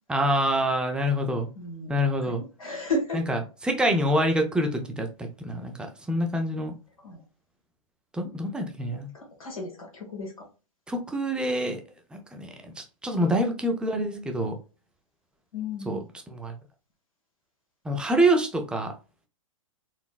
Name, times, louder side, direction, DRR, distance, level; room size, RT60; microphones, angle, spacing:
voice 1, 0.1-1.5 1.9-2.4 3.1-6.7 8.1-9.1 10.9-11.8 12.1-12.5 12.8-14.5 15.9-16.0 16.3-16.5 17.8-18.9, right 1 dB, 5° right, 4 dB, 0.4 m, -26 dB
voice 2, 1.5-2.0 2.2-3.2 7.0-7.2 9.1-10.3 13.2-13.4 15.5-16.0, left 2 dB, 80° left, 0 dB, 1.4 m, -33 dB
4.0 x 2.0 x 2.2 m, 0.33 s
hypercardioid pair, 125°, 17 cm